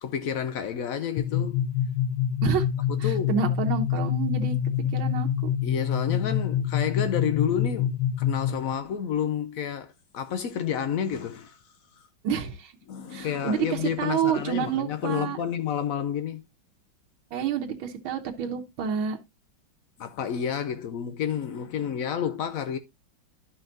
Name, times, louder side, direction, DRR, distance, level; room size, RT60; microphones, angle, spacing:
voice 1, 0.0-1.6 2.9-3.4 5.6-7.9 8.2-11.6 12.9-16.4 20.0-22.8, left 8 dB, 85° left, 0.7 m, -30 dB
sound 1, 1.2-8.7, left 9 dB, 65° left, 1.1 m, -26 dB
voice 2, 3.0-4.6 4.9-5.3 12.2-12.7 13.1-15.4 17.3-19.2, right 7 dB, 80° right, 1.8 m, -28 dB
12.0 x 5.6 x 2.6 m
omnidirectional pair, 2.2 m